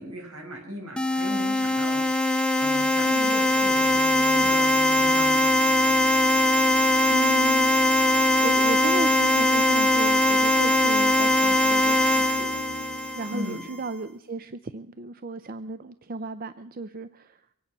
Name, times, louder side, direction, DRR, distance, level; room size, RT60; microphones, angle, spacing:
voice 1, 0.0-5.4 13.3-13.7, equal, 75° right, 1 dB, 6.0 m, -38 dB
sound 1, 1.0-13.7, left 1 dB, 5° left, 0.6 m, -21 dB
sound 2, 3.2-14.5, right 1 dB, 35° left, 0.9 m, -40 dB
voice 2, 7.1-7.7 8.0-12.6 13.2-17.4, right 3 dB, 40° right, 12 dB, 0.5 m, -35 dB
24.5 x 9.2 x 6.0 m, 0.75 s
head